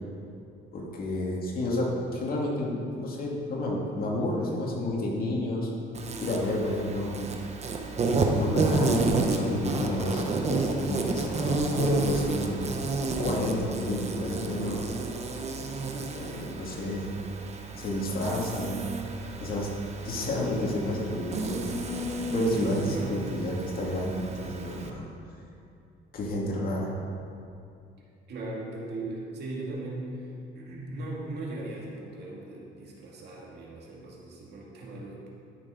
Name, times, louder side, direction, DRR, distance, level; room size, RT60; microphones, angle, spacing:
voice 1, 0.7-5.7 6.2-7.3 8.0-12.7 13.2-14.8 16.1-17.1 17.8-18.8 19.4-19.7 20.0-21.6 22.3-25.1 26.1-26.9, left 1 dB, 50° left, -3 dB, 2.4 m, -30 dB
Insect, 5.9-24.9, right 3 dB, 35° right, 1.0 m, -31 dB
voice 2, 22.9-23.2 28.3-30.3 30.5-35.3, right 2 dB, 60° right, -3 dB, 2.5 m, -38 dB
12.5 x 6.5 x 5.2 m, 2.6 s
cardioid pair, 120°, 20 cm